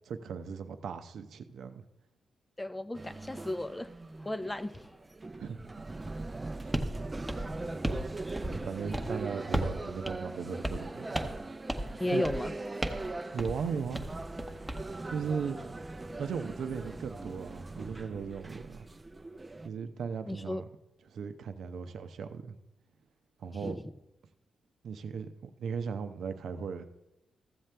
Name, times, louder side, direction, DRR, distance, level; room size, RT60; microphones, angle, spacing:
voice 1, 0.1-1.8 5.4-5.8 6.6-6.7 7.9-8.1 8.4-11.2 12.1-12.4 13.3-14.1 15.1-15.6 16.2-18.9 19.6-20.7 21.1-22.6 23.4-23.8 24.8-26.8, right 6 dB, 75° right, 9 dB, 0.6 m, -37 dB
voice 2, 2.6-3.9 4.2-5.0 12.0-12.5 20.3-20.6 23.6-23.8, left 1 dB, 15° left, 13 dB, 0.5 m, -34 dB
sound 1, 2.9-19.7, right 2 dB, 25° right, 0.5 m, -41 dB
sound 2, 6.7-6.9 7.3-8.1 8.4-8.7 8.9-9.1 9.5-9.8 10.1-10.2 10.6-10.9 11.1-11.4 11.7-11.9 12.2-12.5 12.8-13.1 13.4-13.6 13.9-14.8, equal, ahead, 0.9 m, -34 dB
14.0 x 7.5 x 3.3 m, 0.91 s
cardioid pair, 75°, 0 cm